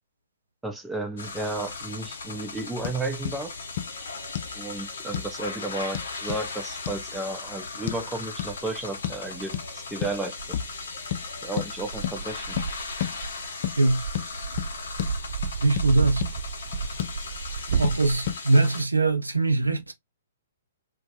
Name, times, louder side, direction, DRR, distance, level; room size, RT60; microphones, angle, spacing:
voice 1, 0.6-3.5 4.6-10.6 11.4-12.6, right 2 dB, 5° right, 0.5 m, -33 dB
sound 1, 1.2-18.8, left 4 dB, 60° left, 0.8 m, -38 dB
sound 2, 2.8-3.0 3.2-3.4 3.8-3.9 4.3-4.6 5.1-5.3 5.9-6.4 6.8-7.0 7.9-8.0 8.4-8.5 9.0-9.2 9.5-9.7 10.0-10.2 10.5-10.7 11.1-11.2 11.6-11.7 12.0-12.2 12.6-12.7 13.0-13.2 13.6-13.8 14.1-14.3 14.6-14.7 15.0-15.1 15.4-15.9 16.2-16.3 16.7-17.2 17.8-18.0 18.3-18.4, left 11 dB, 45° left, 0.4 m, -30 dB
Dog, 8.5-8.6 9.4-9.5 10.4-18.3, right 6 dB, 55° right, 0.4 m, -33 dB
voice 2, 15.6-16.2 17.7-19.9, right 2 dB, 85° right, 0.7 m, -22 dB
2.3 x 2.2 x 2.8 m
figure-of-eight pair, 120°, 0 cm